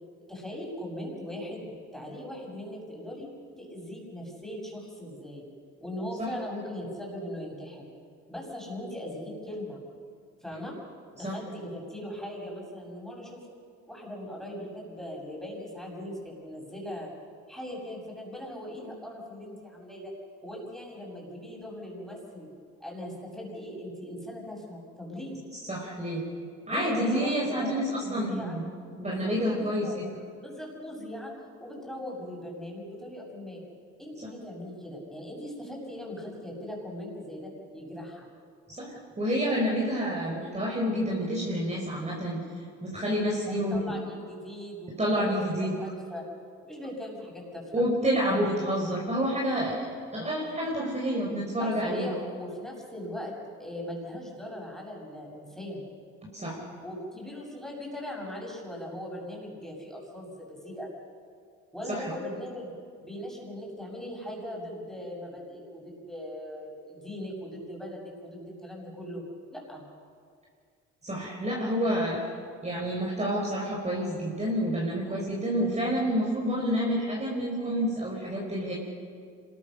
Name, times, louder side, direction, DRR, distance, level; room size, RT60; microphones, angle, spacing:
voice 1, 0.3-3.3 3.6-5.4 5.8-7.8 8.3-9.8 10.4-10.7 11.1-13.4 13.9-17.1 17.5-20.1 20.4-22.5 22.8-25.4 26.7-28.6 29.0-30.0 30.4-31.3 31.6-33.6 34.0-38.3 43.5-46.2 46.6-47.8 51.6-53.3 53.6-55.8 56.8-60.9 61.7-62.7 63.0-69.2 69.5-69.8, left 1 dB, ahead, -2 dB, 7.5 m, -39 dB
voice 2, 25.7-26.3 26.7-28.6 29.0-30.0 38.7-42.4 42.8-43.8 45.0-45.7 47.7-52.1 56.3-56.6 61.9-62.1 71.0-72.2 72.6-78.7, equal, 20° right, -3 dB, 4.8 m, -28 dB
26.0 x 21.0 x 6.6 m, 2.2 s
cardioid pair, 90°, 30 cm